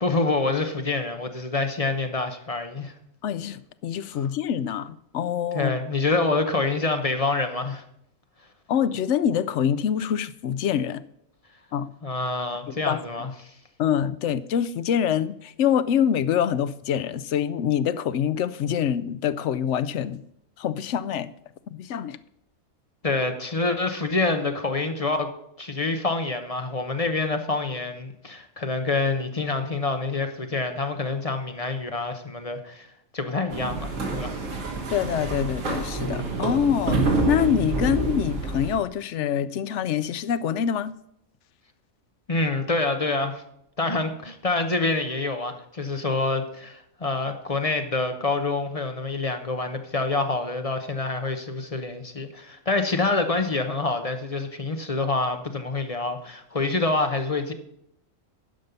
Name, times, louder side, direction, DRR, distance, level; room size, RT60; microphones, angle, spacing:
voice 1, 0.0-2.9 4.1-4.2 5.5-7.8 12.0-13.5 23.0-25.3 25.6-32.9 33.1-34.4 42.3-43.4 43.8-57.5, left 3 dB, 30° left, 0.8 m, -26 dB
voice 2, 3.2-5.7 8.7-11.0 11.7-11.9 12.7-13.0 13.8-20.2 20.6-21.3 21.7-22.2 34.9-40.9, left 9 dB, 65° left, 0.8 m, -25 dB
sound 1, 33.5-38.7, right 3 dB, 70° right, 2.1 m, -27 dB
11.5 x 5.4 x 6.7 m
omnidirectional pair, 1.4 m